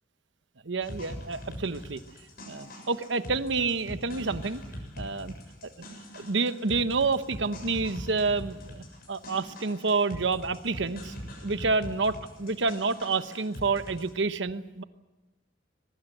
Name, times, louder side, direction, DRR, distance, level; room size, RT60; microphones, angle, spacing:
voice 1, 0.6-2.0 2.5-4.6 5.0-5.3 6.1-11.1 11.4-14.8, right 4 dB, 65° right, 11 dB, 1.0 m, -28 dB
sound 1, 0.8-14.1, equal, 55° left, 7.3 m, -42 dB
22.5 x 21.5 x 8.0 m, 1.1 s
head